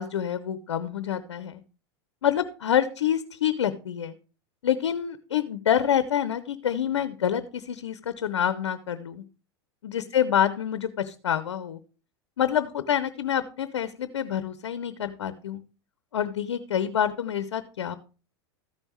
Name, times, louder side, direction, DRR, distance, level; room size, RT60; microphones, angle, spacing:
voice 1, 0.0-1.6 2.2-4.1 4.6-9.2 9.8-11.8 12.4-15.6 16.1-17.9, left 9 dB, 90° left, 13 dB, 0.8 m, -27 dB
14.0 x 5.4 x 4.7 m, 0.35 s
hypercardioid pair, 105°, 14 cm